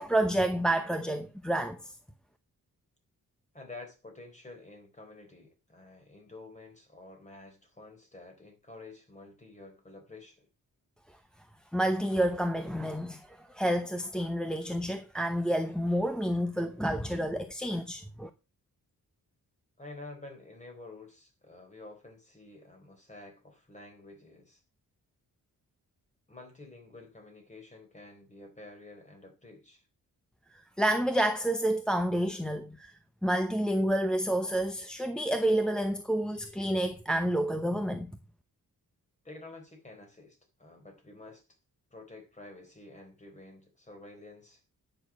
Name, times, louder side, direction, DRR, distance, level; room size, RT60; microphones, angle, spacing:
voice 1, 0.0-1.9 11.7-18.3 30.8-32.9 33.2-38.2, right 1 dB, ahead, 0.8 m, -29 dB
voice 2, 3.5-10.5 19.8-24.6 26.3-29.8 39.2-41.4 41.9-44.6, left 2 dB, 20° left, 4.2 m, -50 dB
10.0 x 6.7 x 6.2 m
wide cardioid pair, 140°, 33 cm